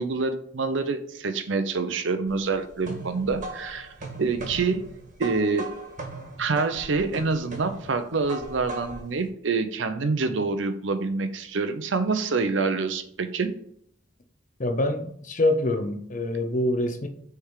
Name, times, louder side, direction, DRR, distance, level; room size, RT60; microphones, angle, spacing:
voice 1, 0.0-3.9 4.2-4.8 5.2-5.7 6.4-13.5, right 4 dB, 70° right, 0.7 m, -26 dB
sound 1, 2.3-9.1, right 2 dB, 45° right, 1.5 m, -39 dB
voice 2, 14.6-17.1, left 1 dB, 40° left, 0.8 m, -25 dB
6.6 x 3.5 x 4.7 m
head